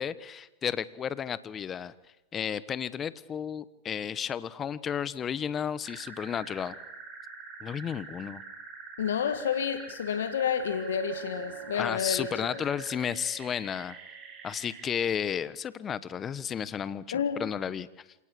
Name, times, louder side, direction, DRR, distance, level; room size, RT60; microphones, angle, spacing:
voice 1, 0.0-1.9 2.3-6.8 7.6-8.4 11.7-14.0 14.4-17.9, left 8 dB, 25° left, 1.2 m, -33 dB
sound 1, 5.8-14.9, right 4 dB, 35° right, 7.1 m, -45 dB
voice 2, 9.0-12.6 17.1-17.4, left 8 dB, 80° left, 1.7 m, -30 dB
sound 2, 10.4-14.0, right 12 dB, 70° right, 2.9 m, -45 dB
27.5 x 18.5 x 8.6 m
hypercardioid pair, 105°, 0 cm